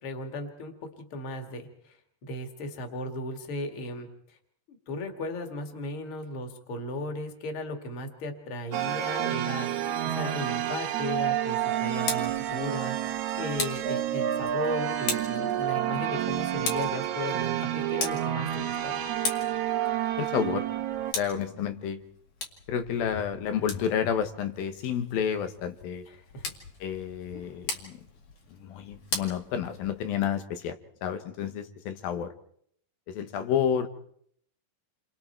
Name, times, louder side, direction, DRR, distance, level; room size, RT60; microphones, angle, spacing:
voice 1, 0.0-0.7 1.1-1.9 2.2-4.1 4.7-9.7 10.0-19.0 26.1-26.5, left 1 dB, 40° left, 5 dB, 2.7 m, -36 dB
sound 1, 8.7-21.1, right 11 dB, 70° right, 2.1 m, -29 dB
Tick, 11.7-30.2, left 4 dB, 60° left, 3.6 m, -40 dB
voice 2, 20.2-20.7 21.2-22.0 22.7-26.1 26.8-28.0 28.6-32.3 33.1-33.9, left 8 dB, 85° left, 8 dB, 3.1 m, -30 dB
29.0 x 24.5 x 4.6 m, 0.68 s
omnidirectional pair, 4.0 m